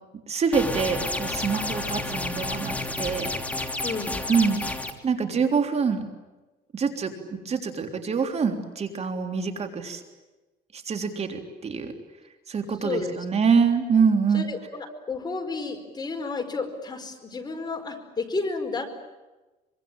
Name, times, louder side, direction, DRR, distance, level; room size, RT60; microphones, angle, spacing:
voice 1, 0.3-3.3 4.3-4.6 5.0-6.0 6.7-10.0 10.7-11.9 12.5-14.5, right 5 dB, 40° right, 5 dB, 3.5 m, -25 dB
sound 1, 0.5-4.9, left 2 dB, 10° left, 3.1 m, -30 dB
voice 2, 3.8-4.3 12.8-13.1 14.3-19.0, left 3 dB, 25° left, 5 dB, 4.8 m, -32 dB
25.5 x 24.5 x 8.9 m, 1.1 s
cardioid pair, 110°, 17 cm